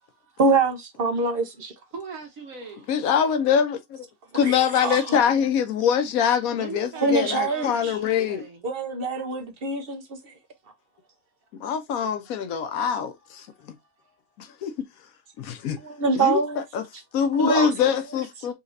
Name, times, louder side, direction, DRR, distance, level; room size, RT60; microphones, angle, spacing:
voice 1, 0.4-1.7 4.4-5.2 7.0-8.0 8.6-10.3 15.8-16.6 17.3-18.0, right 3 dB, 45° right, 0.9 m, -25 dB
voice 2, 1.9-2.9 6.5-8.7 18.4-18.5, right 4 dB, 70° right, 1.7 m, -40 dB
voice 3, 2.9-4.1 4.3-8.4 11.6-13.5 14.4-14.7 15.4-15.8 16.2-16.4 16.7-16.8 17.1-18.5, left 7 dB, 80° left, 1.2 m, -24 dB
4.2 x 2.9 x 2.6 m
omnidirectional pair, 1.5 m